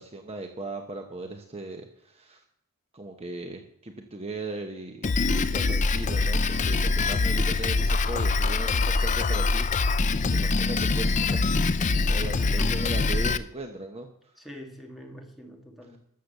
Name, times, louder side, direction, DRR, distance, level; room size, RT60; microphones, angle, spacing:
voice 1, 0.0-2.4 2.9-11.5 12.1-14.3 15.8-15.9, right 2 dB, 25° right, 4 dB, 1.0 m, -38 dB
Drum kit, 5.0-13.4, left 3 dB, 35° left, 0.5 m, -24 dB
voice 2, 12.3-12.8 14.4-16.0, equal, ahead, 1 dB, 2.1 m, -43 dB
13.0 x 7.8 x 6.7 m, 0.69 s
head